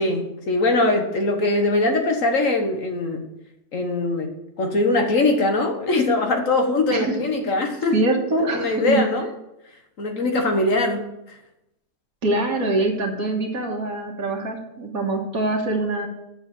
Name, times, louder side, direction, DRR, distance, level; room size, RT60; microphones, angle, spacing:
voice 1, 0.0-3.2 3.7-4.3 4.6-8.0 8.4-9.3 10.0-11.0, left 2 dB, 65° left, 4 dB, 1.6 m, -21 dB
voice 2, 7.9-9.0 12.2-16.1, right 2 dB, 75° right, 0 dB, 2.0 m, -24 dB
8.0 x 6.5 x 7.0 m, 0.87 s
omnidirectional pair, 1.5 m